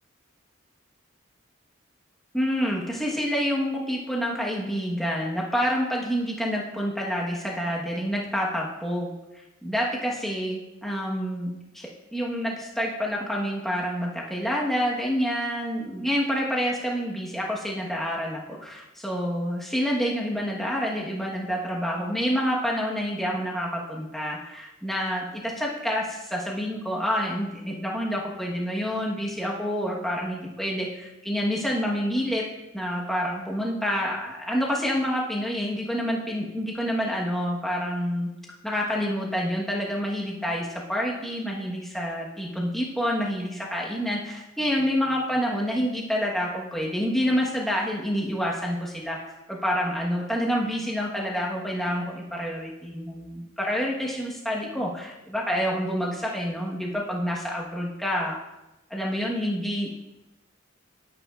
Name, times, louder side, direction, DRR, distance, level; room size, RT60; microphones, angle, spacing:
voice 1, 2.3-9.1 9.6-32.4 32.7-38.3 38.6-49.2 49.5-58.4 58.9-59.9, equal, ahead, -4 dB, 1.2 m, -28 dB
10.0 x 8.1 x 2.4 m, 0.98 s
head